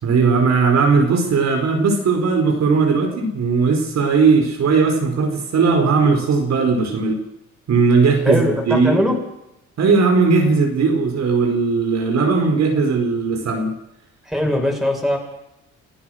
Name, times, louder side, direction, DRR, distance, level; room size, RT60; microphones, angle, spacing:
voice 1, 0.0-7.2 7.7-9.0 9.8-13.7, right 4 dB, 60° right, 3 dB, 4.7 m, -17 dB
voice 2, 8.3-9.2 14.2-15.2, left 1 dB, ahead, 1 dB, 7.3 m, -20 dB
29.0 x 15.5 x 6.5 m, 0.87 s
cardioid pair, 90°, 30 cm